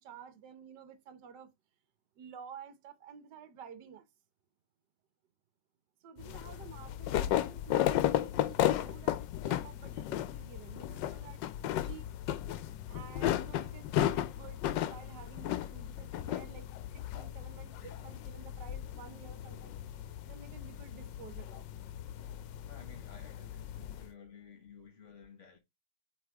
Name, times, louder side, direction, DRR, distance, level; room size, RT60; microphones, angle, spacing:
voice 1, 0.0-1.5 2.2-4.1 6.0-11.4 11.8-12.1 12.9-16.7 16.9-19.8 20.3-21.6, right 7 dB, 70° right, 1.5 m, -52 dB
sound 1, 6.2-24.1, left 12 dB, 90° left, 1.3 m, -35 dB
voice 2, 22.7-25.6, left 6 dB, 45° left, 1.6 m, -54 dB
8.0 x 3.5 x 3.5 m
omnidirectional pair, 1.9 m